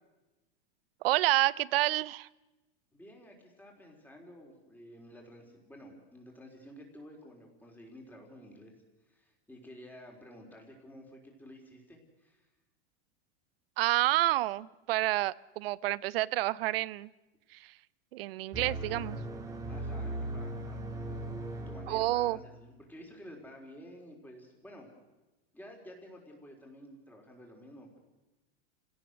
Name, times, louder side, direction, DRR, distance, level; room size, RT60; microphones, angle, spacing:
voice 1, 1.0-2.3 13.8-17.1 17.5-17.7 18.1-19.2 21.9-22.4, right 17 dB, 70° right, 20 dB, 0.7 m, -29 dB
voice 2, 2.9-8.7 9.1-12.5 19.7-20.8 21.1-21.3 21.7-24.9 25.5-28.0, equal, 5° left, 1 dB, 3.9 m, -51 dB
sound 1, 18.5-22.6, right 1 dB, 10° right, 2.1 m, -38 dB
29.5 x 17.0 x 6.5 m, 1.1 s
supercardioid pair, 155°, 31 cm